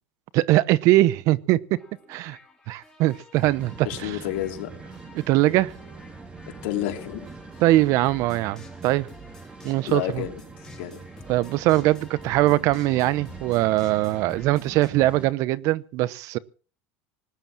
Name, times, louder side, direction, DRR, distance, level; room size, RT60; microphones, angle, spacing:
voice 1, 0.3-1.6 2.1-2.4 2.7-4.2 5.1-5.7 7.6-9.1 9.6-10.2 11.3-16.4, right 17 dB, 55° right, 0.9 m, -21 dB
sound 1, 1.8-14.9, left 2 dB, 10° left, 5.4 m, -50 dB
sound 2, 3.4-15.3, right 4 dB, 20° right, 2.3 m, -43 dB
voice 2, 3.8-4.7 6.6-7.3 9.9-10.4 10.8-11.0 12.5-12.6, left 13 dB, 75° left, 3.4 m, -30 dB
19.5 x 10.0 x 6.2 m
supercardioid pair, 130°, 6 cm